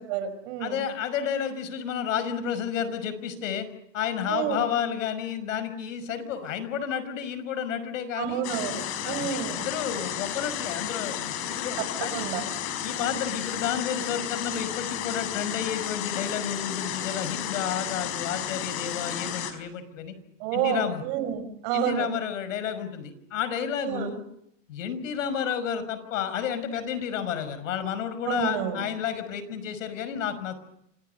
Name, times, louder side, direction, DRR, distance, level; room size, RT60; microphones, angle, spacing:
voice 1, 0.1-0.8 4.3-4.6 8.2-9.7 12.1-12.4 20.4-22.1 23.9-24.1 28.2-28.8, right 10 dB, 45° right, 11 dB, 5.5 m, -29 dB
voice 2, 0.6-3.7 3.9-8.4 9.0-12.2 12.8-20.1 20.5-21.0 21.7-24.2 24.7-30.6, left 8 dB, 85° left, 13 dB, 5.8 m, -31 dB
sound 1, 8.4-19.5, left 10 dB, 35° left, 4.8 m, -32 dB
28.5 x 27.0 x 6.9 m, 0.77 s
supercardioid pair, 165°, 38 cm